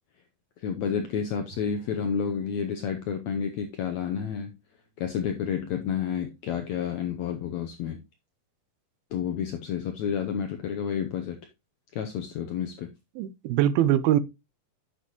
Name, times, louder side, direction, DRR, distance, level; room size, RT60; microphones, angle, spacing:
voice 1, 0.6-4.6 5.0-8.0 9.1-11.4 11.9-12.9, left 7 dB, 80° left, 1.6 m, -30 dB
Bowed string instrument, 1.5-5.7, right 3 dB, 45° left, 2.8 m, -57 dB
voice 2, 13.2-14.2, right 12 dB, 90° right, 2.6 m, -22 dB
10.0 x 6.9 x 2.9 m
omnidirectional pair, 4.2 m